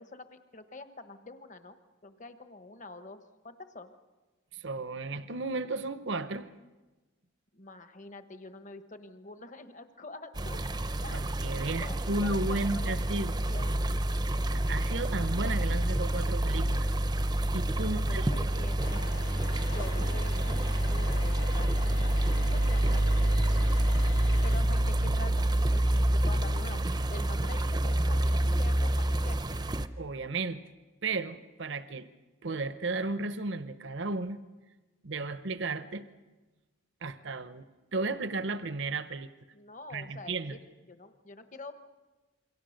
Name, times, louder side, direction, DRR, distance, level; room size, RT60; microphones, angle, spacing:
voice 1, 0.0-1.8 2.0-3.9 7.5-10.6 11.0-13.8 17.8-19.0 19.6-23.6 24.4-26.8 27.1-29.4 39.5-40.6 40.9-41.7, left 2 dB, 35° left, 9 dB, 1.1 m, -46 dB
voice 2, 4.5-6.5 11.1-13.4 14.5-16.9 17.5-18.5 30.0-30.6 31.0-32.1 32.4-34.4 35.0-36.0 37.0-37.6 37.9-39.3 39.9-40.6, right 3 dB, 60° right, 12 dB, 0.9 m, -34 dB
sound 1, 10.4-29.9, right 1 dB, 20° right, 0.7 m, -28 dB
sound 2, 18.8-24.6, left 3 dB, 85° left, 2.6 m, -44 dB
28.0 x 23.5 x 6.5 m, 1.2 s
head